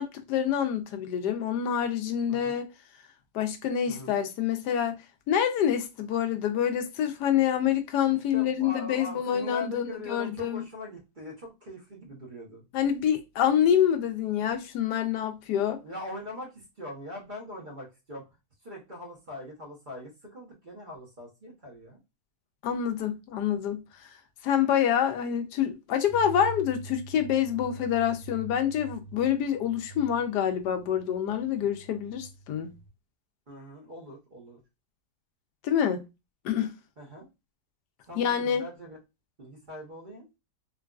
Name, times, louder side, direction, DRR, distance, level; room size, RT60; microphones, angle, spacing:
voice 1, 0.0-2.7 3.3-5.0 5.3-10.6 12.7-15.8 22.6-23.8 24.4-32.7 35.6-36.0 36.4-36.7 38.2-38.6, left 9 dB, 90° left, 1.2 m, -27 dB
voice 2, 8.3-12.6 15.8-18.3 18.6-22.0 33.5-34.6 37.0-37.3 38.0-39.0 39.4-40.3, left 1 dB, 35° right, 1.0 m, -42 dB
sound 1, 26.1-32.9, right 2 dB, 70° left, 1.2 m, -45 dB
3.8 x 2.4 x 2.3 m
omnidirectional pair, 1.7 m